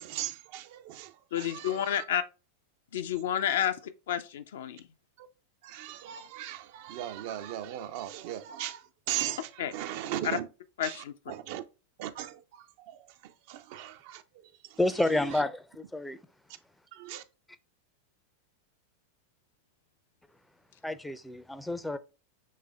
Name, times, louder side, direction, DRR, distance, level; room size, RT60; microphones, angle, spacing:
voice 1, 0.0-2.0 3.1-3.7 5.2-5.3 5.6-10.5 10.8-11.6 12.0-14.8 15.3-15.4 16.9-17.2, right 12 dB, 50° right, 0.5 m, -39 dB
voice 2, 1.3-2.2 2.9-4.8 9.6-9.7 10.2-10.4 10.8-11.1, left 10 dB, 60° left, 0.5 m, -30 dB
voice 3, 14.8-16.2 20.8-22.0, left 1 dB, 5° left, 0.5 m, -29 dB
6.6 x 3.2 x 2.3 m
figure-of-eight pair, 90°, 0 cm